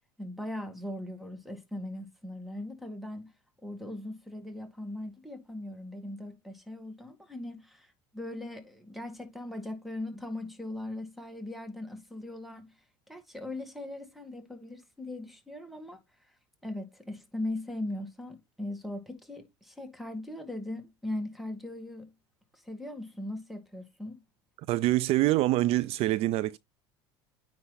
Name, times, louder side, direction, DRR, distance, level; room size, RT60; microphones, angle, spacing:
voice 1, 0.2-3.3 3.6-12.7 13.1-16.0 16.6-22.1 22.5-24.2, left 1 dB, ahead, 2.0 m, -39 dB
voice 2, 24.7-26.6, right 16 dB, 55° right, 0.4 m, -25 dB
9.5 x 3.2 x 4.0 m
supercardioid pair, 105°, 12 cm